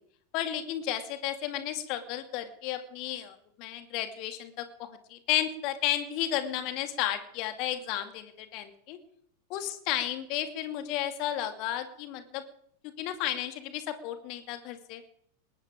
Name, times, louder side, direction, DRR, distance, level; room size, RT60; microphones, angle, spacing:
voice 1, 0.3-9.0 9.5-12.4 13.0-15.0, left 12 dB, 40° left, 8 dB, 2.5 m, -33 dB
20.0 x 19.0 x 3.7 m, 0.65 s
figure-of-eight pair, 90°, 0 cm